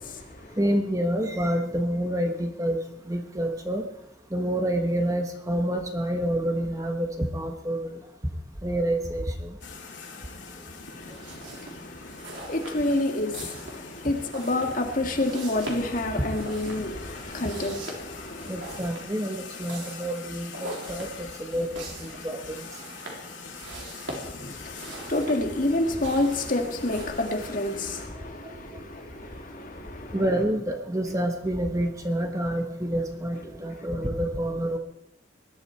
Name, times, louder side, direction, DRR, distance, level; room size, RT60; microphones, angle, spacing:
voice 1, 0.0-0.6 11.0-18.8 24.4-30.2, left 2 dB, 45° left, 2.0 m, -29 dB
voice 2, 0.6-2.8 3.1-3.8 4.3-8.0 8.6-9.5 18.5-21.1 21.4-22.6 28.4-28.6 30.1-34.8, right 1 dB, 20° right, 1.2 m, -28 dB
sound 1, 9.6-28.1, left 4 dB, 90° left, 2.7 m, -43 dB
sound 2, 11.0-27.1, right 2 dB, 85° right, 3.6 m, -43 dB
20.0 x 11.5 x 4.5 m
head